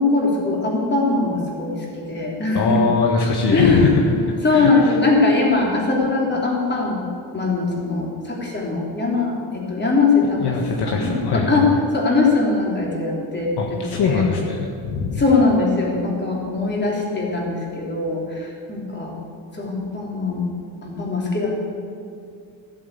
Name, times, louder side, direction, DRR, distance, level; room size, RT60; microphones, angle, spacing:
voice 1, 0.0-2.9 3.5-3.9 4.4-7.0 7.3-10.5 10.8-11.6 11.9-14.2 15.2-19.1 19.5-20.5 20.8-21.5, left 3 dB, 25° left, -2 dB, 3.4 m, -21 dB
voice 2, 2.5-4.0 4.5-5.0 10.4-11.6 13.6-15.2, left 4 dB, 60° left, 1 dB, 1.6 m, -21 dB
15.0 x 8.4 x 8.4 m, 2.4 s
cardioid pair, 140°, 45 cm